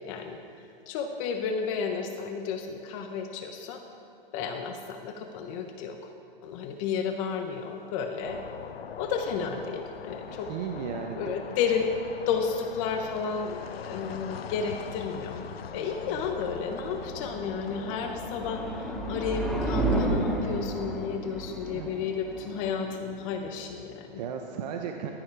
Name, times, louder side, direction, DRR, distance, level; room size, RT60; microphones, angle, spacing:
voice 1, 0.1-3.8 4.3-6.1 6.4-8.4 9.0-10.5 11.1-11.9 12.3-15.5 15.7-24.2, left 6 dB, 35° left, 5 dB, 1.0 m, -32 dB
sound 1, 8.2-21.2, left 7 dB, 90° left, 0.8 m, -42 dB
voice 2, 10.5-11.4 21.7-21.9 24.1-25.1, right 7 dB, 45° right, 3 dB, 1.0 m, -35 dB
sound 2, 15.3-24.2, right 2 dB, ahead, 1.0 m, -33 dB
15.5 x 12.0 x 4.8 m, 2.6 s
hypercardioid pair, 140°, 29 cm